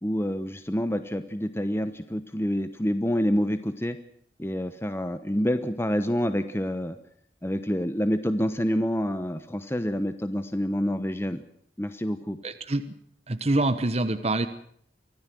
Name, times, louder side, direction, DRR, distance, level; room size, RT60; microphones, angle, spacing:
voice 1, 0.0-4.0 4.4-7.0 7.4-11.4 11.8-12.4, equal, 15° left, 10 dB, 1.0 m, -27 dB
voice 2, 12.4-12.8 13.3-14.5, right 2 dB, 35° right, 9 dB, 1.1 m, -25 dB
25.0 x 16.5 x 7.7 m, 0.67 s
head